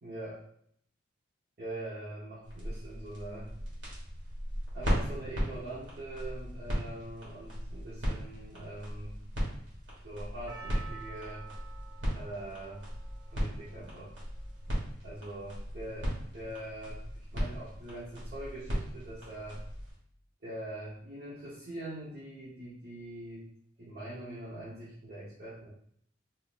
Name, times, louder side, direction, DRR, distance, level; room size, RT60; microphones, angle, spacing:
voice 1, 0.0-0.4 1.6-3.5 4.7-9.1 10.0-11.5 12.1-12.8 13.3-14.1 15.0-16.1 16.3-19.6 20.4-23.5 23.8-25.7, right 1 dB, 50° right, -8 dB, 1.1 m, -43 dB
sound 1, 2.4-20.0, equal, 75° right, 1.4 m, -37 dB
Percussion, 10.5-14.8 15.5-15.6, right 6 dB, 20° right, 0.4 m, -51 dB
3.8 x 2.8 x 2.5 m, 0.67 s
head